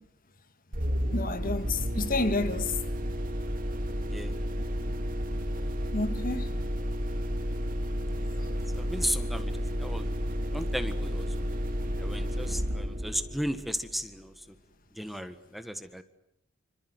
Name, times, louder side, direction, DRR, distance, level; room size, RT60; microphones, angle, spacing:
sound 1, 0.7-14.2, equal, 45° right, 2.8 m, -32 dB
voice 1, 1.1-2.8 5.9-6.6, left 3 dB, 45° left, 1.6 m, -30 dB
voice 2, 4.0-4.4 8.3-10.2 10.5-11.5 12.0-14.5 14.9-16.0, equal, ahead, 1.5 m, -35 dB
28.0 x 25.5 x 8.1 m
head